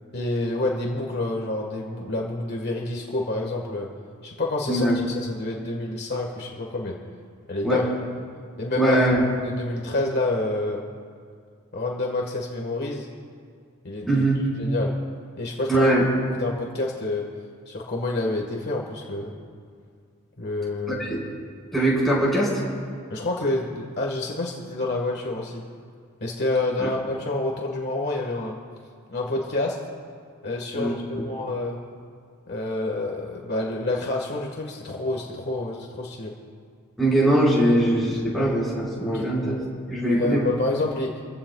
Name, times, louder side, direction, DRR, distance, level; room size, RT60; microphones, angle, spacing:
voice 1, 0.1-3.9 4.2-7.0 7.5-7.9 8.6-9.0 9.4-10.8 11.7-13.1 13.8-14.2 14.6-14.9 15.4-15.9 16.4-17.3 17.7-19.3 20.4-21.0 23.1-25.6 26.2-28.5 29.1-29.8 30.4-31.8 32.5-36.3 39.0-39.3 39.9-41.2, left 2 dB, 50° left, -1 dB, 1.6 m, -28 dB
voice 2, 8.8-9.2 14.1-14.4 15.7-16.1 20.9-21.2 21.7-22.6 26.8-26.9 30.7-30.9 37.0-39.6 39.9-40.4, right 1 dB, ahead, -8 dB, 4.9 m, -21 dB
28.0 x 16.0 x 2.4 m, 2.2 s
head